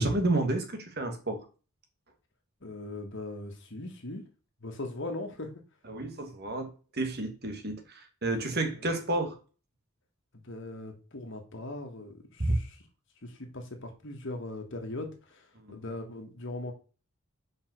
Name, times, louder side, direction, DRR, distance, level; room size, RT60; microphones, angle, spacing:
voice 1, 0.0-1.4 5.9-9.4 12.4-12.6 15.6-15.8, right 2 dB, 45° right, 1.4 m, -30 dB
voice 2, 2.6-4.3 4.6-5.6 8.8-8.9 10.3-12.8 13.2-16.7, left 2 dB, 55° left, 1.6 m, -40 dB
5.3 x 5.1 x 6.0 m
head